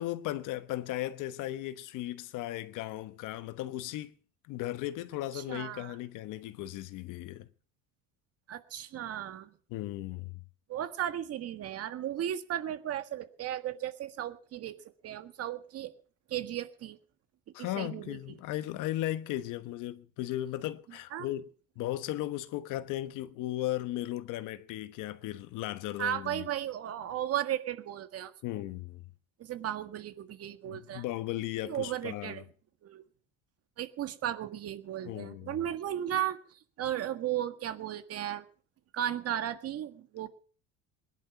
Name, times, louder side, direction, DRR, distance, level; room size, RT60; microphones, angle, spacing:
voice 1, 0.0-4.1 4.5-7.5 9.7-10.4 17.5-21.5 21.8-26.5 28.4-29.0 30.6-32.4 35.1-35.6, left 14 dB, 65° left, 1.2 m, -36 dB
voice 2, 5.3-6.0 8.5-9.5 10.7-14.8 15.0-15.9 16.3-17.0 17.6-18.4 21.1-21.3 26.0-28.6 29.4-31.0 31.6-32.4 32.8-33.0 33.8-38.4 38.9-40.3, right 11 dB, 45° right, 1.7 m, -35 dB
21.0 x 11.0 x 5.9 m
cardioid pair, 150°, 34 cm